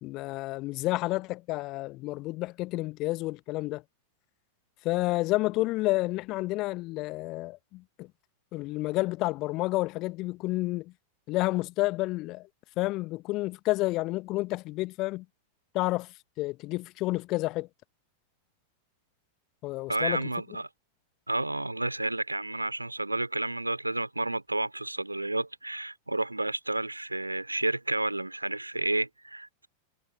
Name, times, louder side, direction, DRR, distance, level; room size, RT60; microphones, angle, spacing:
voice 1, 0.0-3.8 4.8-8.1 8.5-10.9 11.3-12.5 12.8-15.2 15.7-17.7 19.6-20.3, left 20 dB, 40° left, 1.3 m, -30 dB
voice 2, 19.9-20.7 21.3-29.7, right 2 dB, 85° right, 3.0 m, -31 dB
figure-of-eight pair, 90°, 0 cm